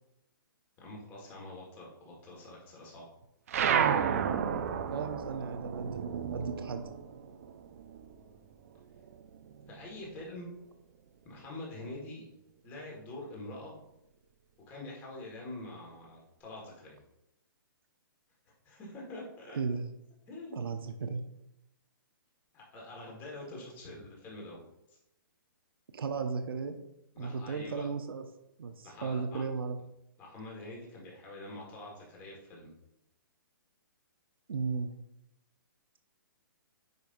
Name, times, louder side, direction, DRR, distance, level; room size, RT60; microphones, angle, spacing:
voice 1, 0.8-3.1 9.7-10.5 11.2-12.2 12.6-13.7 14.7-17.0 18.7-19.6 20.3-20.6 22.5-25.0 27.1-27.9 28.8-29.4 30.2-32.7, left 2 dB, 15° left, -2 dB, 1.7 m, -45 dB
sound 1, 3.5-8.4 8.7-10.1, right 8 dB, 40° right, 0.5 m, -32 dB
voice 2, 4.9-6.8 19.5-19.9 20.5-21.3 25.9-26.8 27.2-28.2 28.6-29.8 34.5-34.9, right 5 dB, 85° right, 7 dB, 0.8 m, -35 dB
9.4 x 5.2 x 2.6 m, 0.86 s
hypercardioid pair, 165°, 12 cm